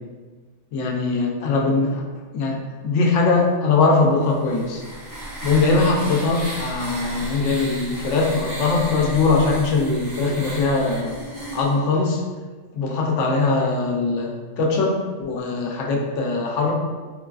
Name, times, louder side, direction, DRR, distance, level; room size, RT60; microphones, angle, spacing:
voice 1, 0.7-2.0 2.3-4.8 5.4-11.1 11.5-12.2 12.8-14.3 14.6-16.7, left 3 dB, 85° left, -1 dB, 0.9 m, -21 dB
sound 1, 4.2-11.7, right 1 dB, 80° right, 1.3 m, -34 dB
3.8 x 2.3 x 2.3 m, 1.4 s
omnidirectional pair, 1.2 m